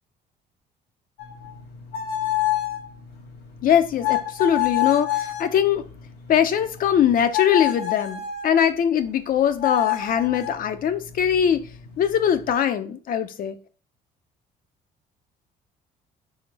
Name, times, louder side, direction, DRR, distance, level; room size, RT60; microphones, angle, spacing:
sound 1, 1.2-8.6 9.6-12.5, left 13 dB, 90° left, 2.4 m, -29 dB
voice 1, 3.6-5.8 6.3-11.6 12.0-13.6, left 9 dB, 55° left, 9 dB, 0.8 m, -21 dB
5.0 x 3.7 x 5.3 m, 0.40 s
cardioid pair, 110°, 17 cm